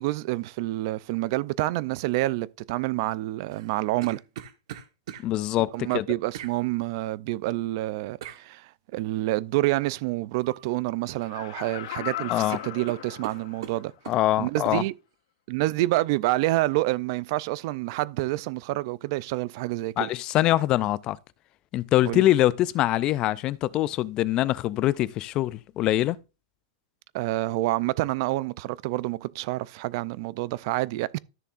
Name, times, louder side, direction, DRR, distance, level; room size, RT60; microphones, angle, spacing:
voice 1, 0.0-4.2 5.7-13.9 14.4-14.9 15.5-20.1 22.1-22.2 27.1-31.2, right 18 dB, 45° right, 0.4 m, -28 dB
sound 1, 3.5-5.3 6.3-6.6 8.2-8.4 10.4-10.7 11.0-11.7 12.0-12.1 12.5-14.2 14.6-14.8, right 11 dB, 65° right, 1.2 m, -41 dB
voice 2, 5.2-6.1 12.3-12.6 14.1-14.8 20.0-21.2 21.7-26.2, left 14 dB, 30° left, 0.3 m, -24 dB
Laughter, 11.2-13.8 14.3-14.4, left 14 dB, 70° left, 0.6 m, -37 dB
13.5 x 6.8 x 2.5 m
supercardioid pair, 155°, 3 cm